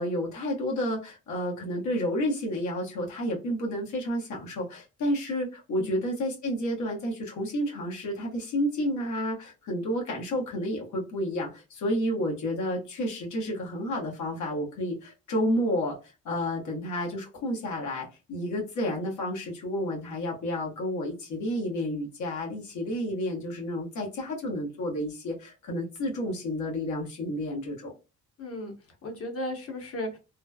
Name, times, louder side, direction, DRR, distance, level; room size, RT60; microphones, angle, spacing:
voice 1, 0.0-16.0 16.2-27.9, equal, 75° left, 0 dB, 1.2 m, -30 dB
voice 2, 28.4-30.2, left 1 dB, 50° left, 3 dB, 1.0 m, -36 dB
3.2 x 2.0 x 2.2 m, 0.30 s
cardioid pair, 90°, 30 cm